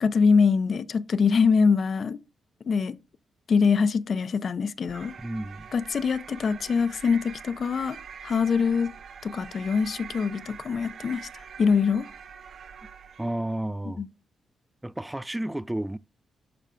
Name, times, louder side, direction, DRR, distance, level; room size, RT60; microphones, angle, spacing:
voice 1, 0.0-2.2 2.7-3.0 3.5-5.1 5.7-8.0 8.2-8.9 9.2-12.1 13.9-14.1, left 5 dB, 60° left, 0.6 m, -24 dB
sound 1, 4.9-13.4, right 7 dB, 65° right, 0.6 m, -44 dB
voice 2, 5.2-5.7 13.2-14.0 14.8-16.0, right 1 dB, 10° right, 0.4 m, -31 dB
12.0 x 4.8 x 2.2 m
supercardioid pair, 50°, 0 cm